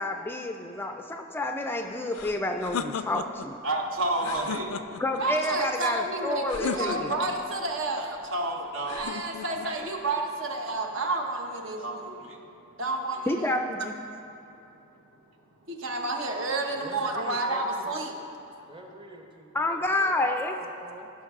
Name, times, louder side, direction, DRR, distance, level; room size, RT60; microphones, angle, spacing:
voice 1, 0.0-3.6 5.0-7.1 13.3-14.0 19.5-20.5, left 1 dB, 10° left, 4 dB, 0.3 m, -29 dB
sound 1, 2.1-3.5 4.1-5.2 6.5-7.4 8.9-9.7, left 6 dB, 90° left, 0.4 m, -35 dB
voice 2, 3.6-4.7 5.2-12.4 12.8-13.4 15.7-18.1, right 2 dB, 70° right, 2 dB, 1.0 m, -30 dB
voice 3, 16.7-17.9 18.7-21.1, right 1 dB, 25° right, 2 dB, 0.8 m, -45 dB
15.0 x 5.9 x 3.6 m, 2.8 s
head